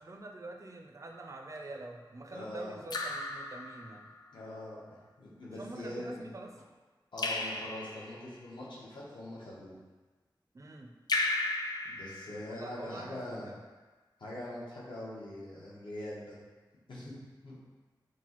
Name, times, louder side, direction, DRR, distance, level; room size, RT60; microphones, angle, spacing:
voice 1, 0.0-4.1 5.6-6.5 10.5-10.9 12.5-13.6, right 2 dB, 40° right, 3 dB, 0.4 m, -45 dB
Raindrop / Drip, 1.1-1.6 2.9-4.2 7.2-8.3 11.1-12.8, left 2 dB, 55° left, 0.4 m, -35 dB
voice 2, 2.3-2.8 4.3-4.8 5.2-6.3 7.1-9.8 11.8-13.5 14.2-16.4 16.9-17.1 17.4-17.5, left 1 dB, 75° left, -7 dB, 1.0 m, -42 dB
5.9 x 2.2 x 3.0 m, 1.3 s
wide cardioid pair, 90°, 8 cm